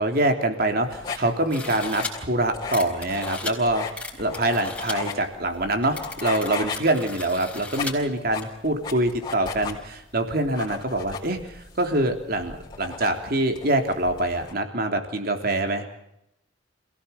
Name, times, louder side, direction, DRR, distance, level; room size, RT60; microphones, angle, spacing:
voice 1, 0.0-3.9 4.2-15.9, right 1 dB, 50° right, 5 dB, 3.3 m, -25 dB
sound 1, 0.7-14.5, left 5 dB, 25° left, 4.3 m, -37 dB
sound 2, 1.5-2.1 2.7-3.5 4.0-4.9 5.5-5.6 5.8-7.9 8.4-8.5, left 3 dB, 5° left, 4.2 m, -36 dB
27.5 x 17.0 x 7.0 m, 0.81 s
head